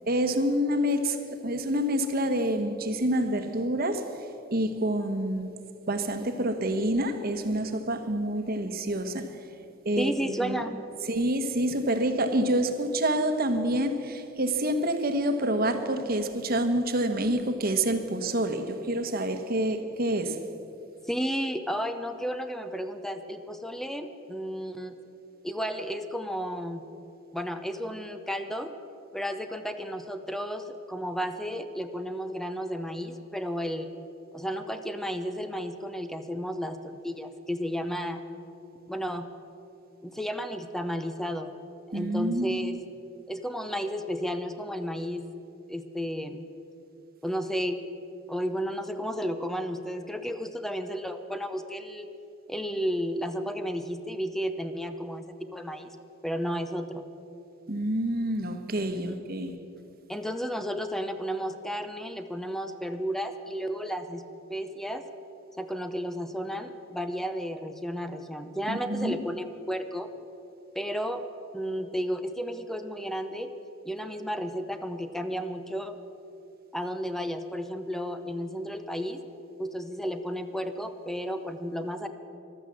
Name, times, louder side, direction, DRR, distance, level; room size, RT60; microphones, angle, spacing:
voice 1, 0.1-4.0 4.5-5.5 5.9-9.3 9.8-10.6 11.1-20.4 41.9-42.8 57.7-59.5 68.7-69.2, right 1 dB, 50° right, 8 dB, 1.2 m, -27 dB
voice 2, 10.0-10.8 21.1-24.9 25.4-26.8 27.3-28.7 29.1-33.9 34.3-38.2 38.9-39.3 40.0-41.6 41.9-42.8 43.3-45.3 45.7-46.4 47.2-47.8 48.3-52.1 52.5-56.0 56.2-57.1 59.0-59.2 60.1-64.2 64.5-65.1 65.6-70.1 70.7-71.2 71.5-73.5 73.8-76.0 76.7-79.2 79.6-82.1, equal, ahead, 8 dB, 0.6 m, -33 dB
14.5 x 12.5 x 7.5 m, 2.7 s
head